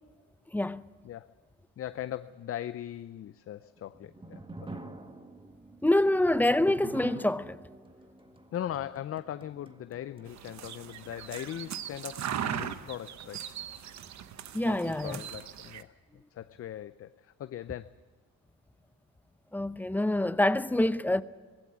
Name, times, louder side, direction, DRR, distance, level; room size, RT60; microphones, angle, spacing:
voice 1, 1.8-4.7 8.5-13.4 14.6-15.9 16.3-17.9, left 11 dB, 50° left, 0.5 m, -39 dB
sound 1, 3.6-10.9, right 2 dB, 15° right, 1.6 m, -46 dB
voice 2, 5.8-7.6 14.5-15.2 19.5-21.2, left 1 dB, 5° left, 0.7 m, -26 dB
sound 2, 10.3-15.8, right 9 dB, 65° right, 1.1 m, -39 dB
19.0 x 16.0 x 9.6 m
cardioid pair, 90°, 30 cm